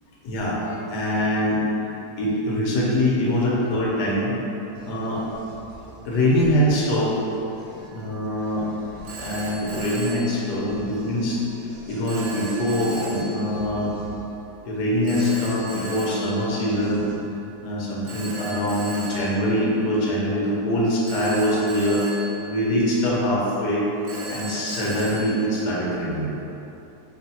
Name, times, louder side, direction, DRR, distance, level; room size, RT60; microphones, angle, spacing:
voice 1, 0.2-1.6 2.2-4.4 4.8-5.2 6.0-7.2 7.9-8.7 9.2-11.4 11.9-13.9 14.6-17.0 17.6-22.0 22.4-23.9 24.3-26.3, equal, 85° left, -5 dB, 1.4 m, -23 dB
sound 1, 4.7-17.2, equal, 65° right, 1.1 m, -43 dB
Telephone, 7.8-8.1 9.1-11.1 12.1-13.8 15.1-17.2 18.1-20.4 21.1-23.4 24.1-26.3, right 2 dB, 80° right, 1.4 m, -37 dB
5.3 x 2.7 x 2.7 m, 2.9 s
omnidirectional pair, 1.8 m